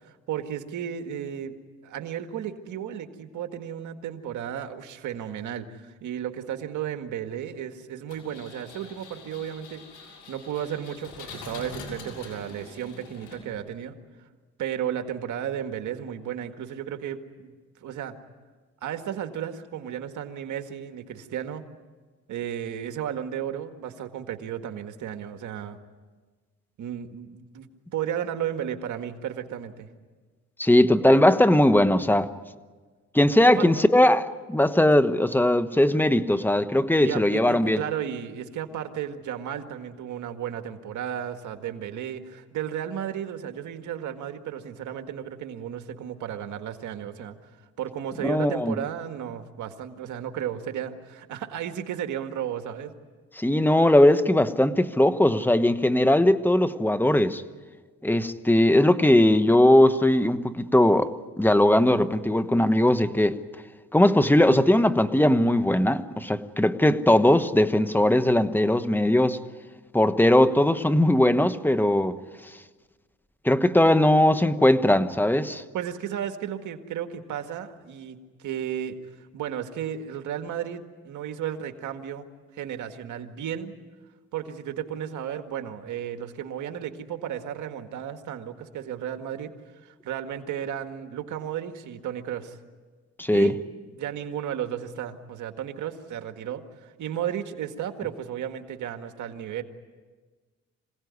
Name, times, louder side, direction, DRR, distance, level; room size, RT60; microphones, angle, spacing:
voice 1, 0.3-1.5 1.8-9.8 10.3-13.9 14.6-17.5 17.8-18.2 18.8-21.6 22.3-25.8 26.8-29.9 33.5-33.7 37.0-47.4 47.8-52.9 73.8-73.9 75.7-79.0 79.3-82.3 82.5-83.8 84.3-89.5 89.8-92.6 93.3-93.6 94.0-99.6, right 9 dB, 75° right, 7 dB, 1.9 m, -34 dB
Engine, 8.1-13.8, left 3 dB, 85° left, 6.4 m, -44 dB
voice 2, 30.6-32.3 33.1-37.8 48.2-48.7 53.4-57.4 58.0-61.1 61.4-63.4 63.9-69.4 69.9-72.2 73.4-75.6 93.2-93.5, left 1 dB, 5° left, 11 dB, 1.2 m, -19 dB
26.0 x 17.5 x 9.7 m, 1.4 s
cardioid pair, 90°, 30 cm